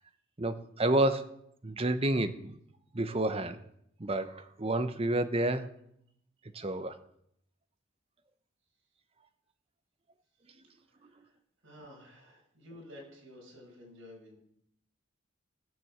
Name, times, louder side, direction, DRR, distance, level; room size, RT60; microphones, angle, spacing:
voice 1, 0.4-1.3 1.6-2.5 2.9-3.6 4.0-5.7 6.5-6.9, right 1 dB, 30° right, 10 dB, 0.9 m, -29 dB
voice 2, 10.9-11.3 11.6-14.4, left 1 dB, 80° right, -3 dB, 6.2 m, -52 dB
17.0 x 6.8 x 7.5 m, 0.73 s
head